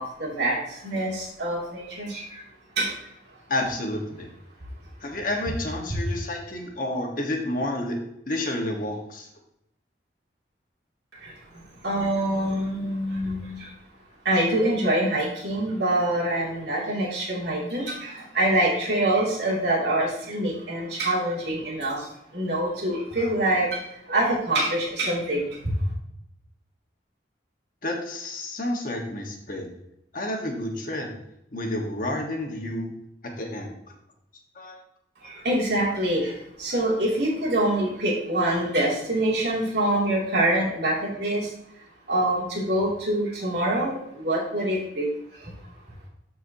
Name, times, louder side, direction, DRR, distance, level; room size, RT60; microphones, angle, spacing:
voice 1, 0.0-2.2 2.8-2.9 11.8-13.6 14.2-22.0 22.3-23.8 24.1-25.5 35.2-36.3 36.6-41.5 42.1-45.1, right 1 dB, 70° right, -4 dB, 2.5 m, -25 dB
voice 2, 3.5-4.3 5.0-8.0 8.3-9.3 27.8-29.7 30.1-31.2 31.5-32.9 33.4-33.7 34.5-34.8, left 1 dB, 50° left, 1 dB, 1.4 m, -30 dB
13.0 x 4.7 x 2.8 m, 0.79 s
head